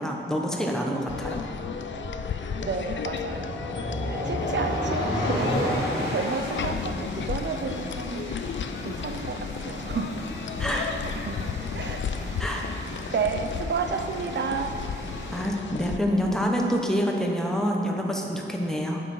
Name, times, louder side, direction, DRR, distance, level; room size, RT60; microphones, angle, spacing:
voice 1, 0.0-1.5 10.6-10.9 12.4-12.7 15.3-19.0, equal, 5° left, 0 dB, 1.1 m, -27 dB
sound 1, 1.1-16.0, left 6 dB, 70° left, 0.5 m, -34 dB
sound 2, 1.4-6.7, left 1 dB, 50° left, 2.5 m, -30 dB
voice 2, 2.6-8.4 8.8-10.2 11.0-11.5 11.7-12.4 13.1-14.8, right 5 dB, 60° right, 7 dB, 0.7 m, -32 dB
sound 3, 5.3-15.4, equal, 15° right, 1.6 m, -40 dB
9.1 x 7.6 x 5.6 m, 2.7 s
wide cardioid pair, 135°, 20 cm